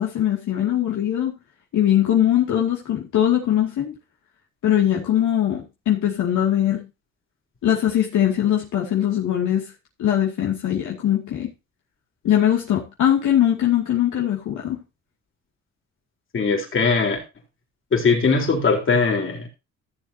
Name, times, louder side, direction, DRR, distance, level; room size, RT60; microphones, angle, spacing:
voice 1, 0.0-1.4 1.7-3.9 4.6-6.9 7.6-9.6 10.0-11.5 12.2-14.8, left 11 dB, 75° left, -2 dB, 2.4 m, -21 dB
voice 2, 16.3-17.2 17.9-19.5, left 4 dB, 40° left, 0 dB, 4.0 m, -20 dB
15.5 x 7.3 x 2.8 m, 0.27 s
cardioid pair, 90°, 30 cm